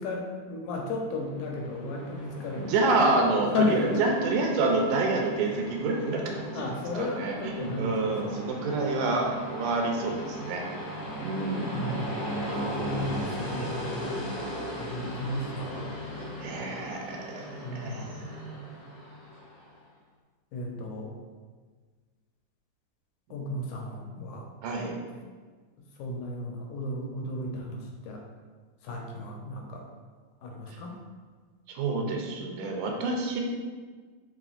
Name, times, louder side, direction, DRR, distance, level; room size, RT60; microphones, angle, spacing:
voice 1, 0.0-2.8 3.5-4.0 6.5-8.3 11.7-12.7 13.0-14.3 14.8-15.9 17.6-18.2 20.5-21.1 23.3-24.4 25.0-25.1 26.0-28.2 28.8-29.8 30.4-30.9, left 2 dB, 85° left, 0 dB, 2.0 m, -34 dB
Train, 1.1-19.7, equal, 55° left, 1.5 m, -37 dB
voice 2, 2.6-10.6 11.2-12.1 16.4-18.7 23.3-23.5 24.6-25.0 31.8-33.4, right 3 dB, 90° right, 1 dB, 2.0 m, -28 dB
5.0 x 3.0 x 2.4 m, 1.5 s
omnidirectional pair, 3.4 m